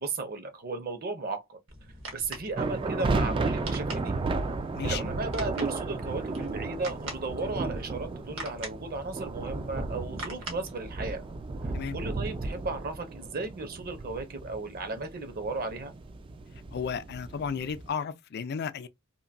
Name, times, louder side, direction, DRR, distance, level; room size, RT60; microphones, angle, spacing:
voice 1, 0.0-1.6 2.1-4.2 4.8-11.2 11.9-15.9, right 3 dB, 50° right, 0.8 m, -35 dB
sound 1, 1.7-11.3, right 2 dB, 70° right, 1.2 m, -44 dB
sound 2, 2.6-17.9, right 3 dB, 25° right, 0.3 m, -34 dB
voice 2, 4.7-5.1 11.7-12.0 16.7-18.9, left 6 dB, 55° left, 0.4 m, -33 dB
2.9 x 2.5 x 2.5 m
head